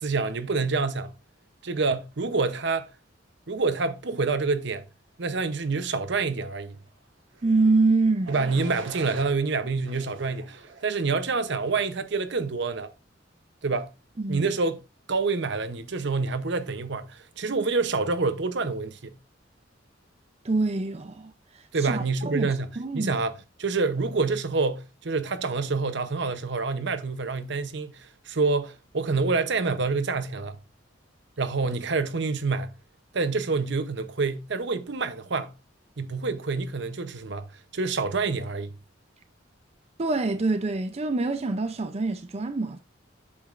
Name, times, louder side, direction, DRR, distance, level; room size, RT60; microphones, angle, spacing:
voice 1, 0.0-1.1 1.6-2.9 3.5-4.8 5.2-6.8 8.3-12.9 13.6-13.9 14.3-14.8 15.1-19.2 21.7-22.7 22.9-23.3 23.6-30.6 31.4-32.7 33.1-35.5 36.0-37.5 37.7-38.7, right 4 dB, 65° right, 0.8 m, -27 dB
sound 1, 7.3-7.7 8.2-9.3 9.9-10.9 11.5-11.9, right 3 dB, 85° right, 1.6 m, -43 dB
voice 2, 7.4-8.3 14.2-14.5 20.4-23.2 40.0-42.8, right 3 dB, 35° right, 0.5 m, -26 dB
8.4 x 6.9 x 2.5 m
head